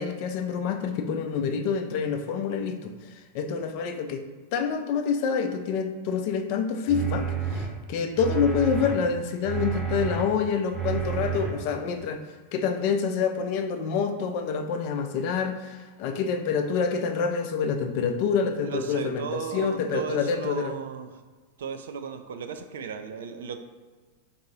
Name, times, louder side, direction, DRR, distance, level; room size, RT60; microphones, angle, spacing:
voice 1, 0.0-4.2 4.5-12.2 12.5-20.8, left 6 dB, 45° left, 5 dB, 0.4 m, -27 dB
sound 1, 6.9-7.7 8.2-8.9 9.4-10.2 10.7-11.5 12.0-12.1, right 8 dB, 20° right, 0.8 m, -30 dB
voice 2, 18.6-21.2 21.6-23.6, right 6 dB, 60° right, 8 dB, 0.4 m, -35 dB
3.6 x 2.7 x 3.9 m, 1.4 s
figure-of-eight pair, 90°, 0 cm